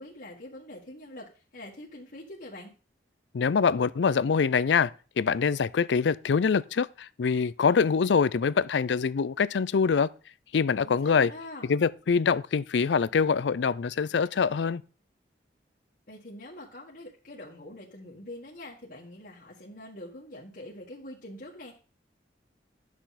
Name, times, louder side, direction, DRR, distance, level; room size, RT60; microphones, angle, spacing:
voice 1, 0.0-2.7 10.8-11.7 16.1-21.8, left 1 dB, 50° left, 1.7 m, -44 dB
voice 2, 3.3-4.9 5.2-10.1 10.5-11.3 11.7-14.8, left 5 dB, 75° left, 0.4 m, -24 dB
10.0 x 6.3 x 4.1 m
head